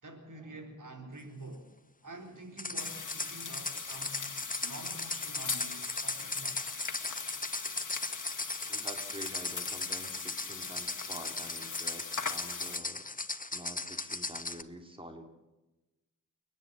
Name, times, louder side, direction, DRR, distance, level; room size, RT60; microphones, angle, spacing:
voice 1, 0.0-1.7 2.0-4.3 4.6-6.7, right 2 dB, 80° right, 3 dB, 4.1 m, -47 dB
sound 1, 2.6-14.6, left 3 dB, 25° left, 1.0 m, -38 dB
sound 2, 2.8-12.8, left 5 dB, 75° left, 1.8 m, -41 dB
voice 2, 8.7-13.0 13.5-15.3, right 1 dB, 15° right, 4 dB, 3.0 m, -47 dB
29.5 x 10.5 x 8.8 m, 1.0 s
wide cardioid pair, 65°, 31 cm